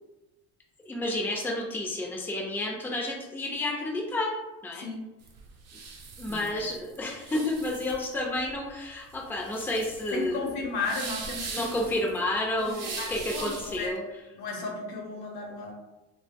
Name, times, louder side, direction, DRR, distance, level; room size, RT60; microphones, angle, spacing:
voice 1, 0.9-4.3 4.6-4.9 6.2-10.5 11.5-14.0, left 1 dB, 5° left, -2 dB, 0.5 m, -30 dB
sound 1, 5.2-13.9, right 4 dB, 60° right, 0.6 m, -41 dB
voice 2, 10.1-11.7 12.6-14.0 14.3-15.7, left 3 dB, 70° left, 0 dB, 0.8 m, -34 dB
2.1 x 2.1 x 3.4 m, 1.0 s
supercardioid pair, 100°, 29 cm